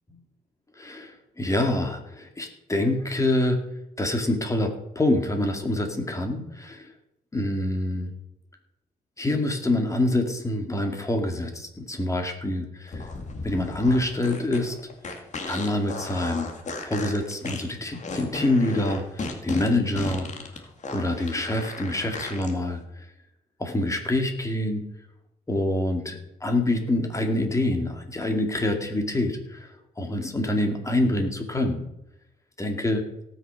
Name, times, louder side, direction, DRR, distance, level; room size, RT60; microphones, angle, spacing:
voice 1, 0.8-3.6 4.0-6.9 7.3-8.1 9.2-13.1 13.4-14.7 15.5-16.5 16.8-20.3 20.9-23.1 23.6-24.8 25.5-26.1 26.4-31.9 32.6-33.0, left 1 dB, 20° left, 4 dB, 2.4 m, -26 dB
sound 1, 12.9-22.5, left 3 dB, 45° left, 2.3 m, -35 dB
17.5 x 6.5 x 5.9 m, 0.86 s
cardioid pair, 95°, 17 cm